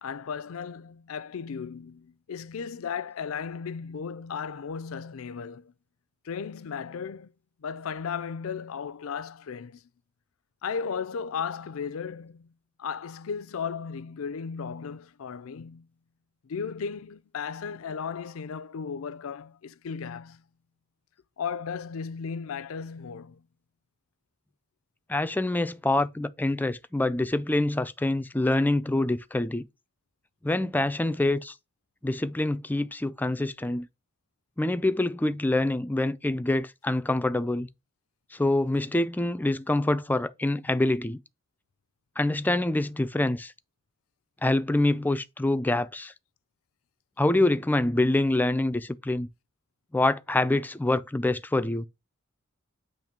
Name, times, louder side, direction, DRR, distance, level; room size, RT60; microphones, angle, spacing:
voice 1, 0.0-5.7 6.2-7.3 7.6-9.8 10.6-12.5 12.8-15.9 16.4-20.4 21.4-23.4, left 6 dB, 70° left, 0.4 m, -35 dB
voice 2, 25.1-29.7 30.4-31.5 32.0-33.9 34.6-37.7 38.3-41.2 42.2-43.5 44.4-46.1 47.2-49.3 49.9-51.9, left 2 dB, 10° left, 0.4 m, -26 dB
8.8 x 3.1 x 5.9 m
head